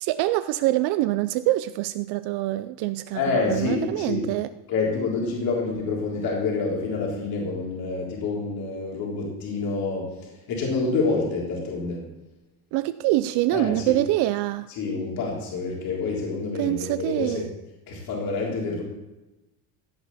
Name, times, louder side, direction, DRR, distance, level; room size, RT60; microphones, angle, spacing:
voice 1, 0.0-4.5 12.7-14.7 16.6-17.5, right 16 dB, 60° right, 12 dB, 0.5 m, -25 dB
voice 2, 3.1-4.3 4.7-10.1 10.5-12.1 13.5-14.0 14.7-17.5 17.9-18.8, left 4 dB, 50° left, -3 dB, 3.6 m, -27 dB
15.5 x 9.8 x 4.1 m, 1.0 s
cardioid pair, 170°, 44 cm